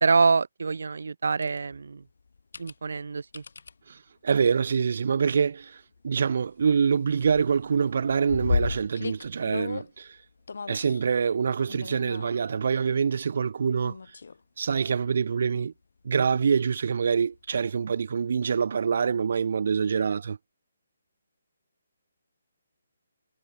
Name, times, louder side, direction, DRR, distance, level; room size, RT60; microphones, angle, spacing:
voice 1, 0.0-2.0 2.6-3.4, right 4 dB, 70° right, 1.1 m, -25 dB
sound 1, 1.4-1.6 2.3-2.7 3.3-3.7 4.9-5.2 5.6-5.7 6.0-6.9 7.2-9.9 10.5-11.0 11.7-12.6 13.8-14.4 14.9-15.0 17.3-17.4, left 4 dB, 70° left, 0.5 m, -33 dB
voice 2, 4.2-10.2 10.7-14.0 14.6-15.7 16.0-20.4, right 6 dB, 50° right, 0.8 m, -25 dB
hypercardioid pair, 175°, 0 cm